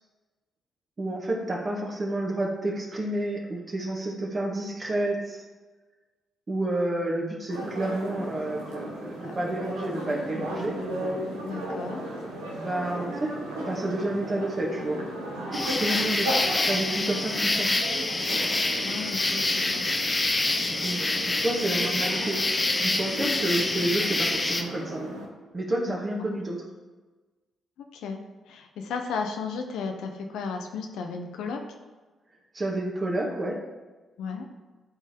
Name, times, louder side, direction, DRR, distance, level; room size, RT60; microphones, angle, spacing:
voice 1, 1.0-5.4 6.5-10.8 12.6-13.3 13.7-15.0 15.7-16.4 16.7-17.7 20.7-25.1 25.5-26.6 32.5-33.6, right 1 dB, 40° right, -1 dB, 2.1 m, -30 dB
sound 1, 7.5-25.3, right 1 dB, 90° right, 1.2 m, -35 dB
voice 2, 11.4-12.0 18.8-19.9 25.9-26.0 27.9-28.2 28.5-31.6 34.2-34.5, left 5 dB, 75° left, 4 dB, 0.8 m, -34 dB
sound 2, 15.5-24.6, left 2 dB, 30° left, 0.9 m, -26 dB
12.0 x 4.2 x 3.6 m, 1.3 s
hypercardioid pair, 45°, 0 cm